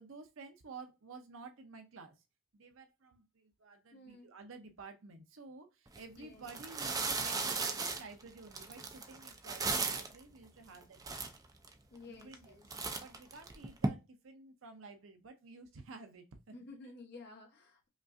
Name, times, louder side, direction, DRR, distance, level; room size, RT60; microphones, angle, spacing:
voice 1, 0.0-2.2 2.5-11.0 12.1-16.2, right 4 dB, 75° right, 0.6 m, -52 dB
voice 2, 3.9-4.3 6.2-6.5 11.9-12.6 16.5-17.9, left 3 dB, 55° left, 1.1 m, -53 dB
sound 1, 5.9-6.0 6.4-10.2 10.7-10.8 11.0-11.7 12.2-12.4 12.7-13.9, right 4 dB, 20° right, 0.4 m, -36 dB
5.1 x 2.4 x 2.5 m
head